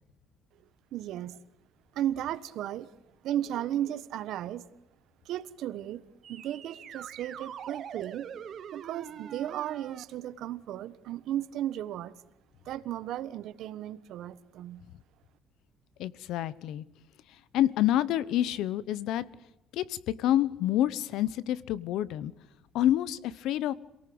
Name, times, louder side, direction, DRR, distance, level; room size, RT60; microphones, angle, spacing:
voice 1, 0.9-1.4 1.9-2.9 3.2-4.7 5.2-6.0 6.3-8.3 8.7-12.1 12.6-14.8, right 12 dB, 60° right, 14 dB, 1.3 m, -35 dB
sound 1, 6.2-10.0, right 8 dB, 40° right, 1.4 m, -43 dB
voice 2, 16.0-16.8 17.5-19.2 19.7-22.3 22.7-23.7, left 12 dB, 70° left, 19 dB, 1.0 m, -28 dB
27.0 x 18.5 x 7.9 m, 0.91 s
cardioid pair, 160°, 0 cm